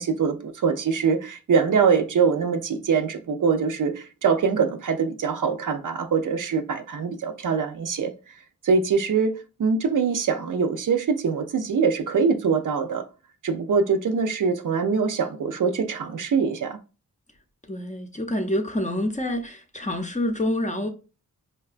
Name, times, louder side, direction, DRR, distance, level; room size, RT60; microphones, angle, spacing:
voice 1, 0.0-8.1 8.6-13.0 13.4-16.8, right 5 dB, 60° right, 0.5 m, -23 dB
voice 2, 17.6-20.9, left 1 dB, 20° left, 0.6 m, -27 dB
4.6 x 2.2 x 2.4 m
wide cardioid pair, 70°, 36 cm